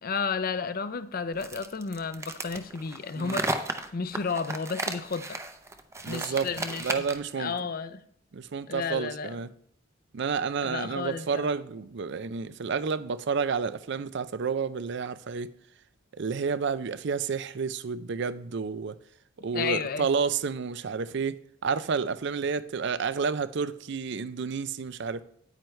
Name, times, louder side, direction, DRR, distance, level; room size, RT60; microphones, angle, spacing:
voice 1, 0.0-5.4 6.0-7.0 7.4-8.0 8.7-9.4 10.6-11.5 19.5-20.1, left 5 dB, 45° left, 0.5 m, -32 dB
sound 1, 1.4-7.3, right 2 dB, 15° right, 0.6 m, -34 dB
voice 2, 6.0-6.5 6.8-7.5 8.3-9.5 10.1-15.5 16.2-19.0 19.4-25.2, right 5 dB, 60° right, 0.5 m, -30 dB
9.2 x 9.0 x 3.2 m
head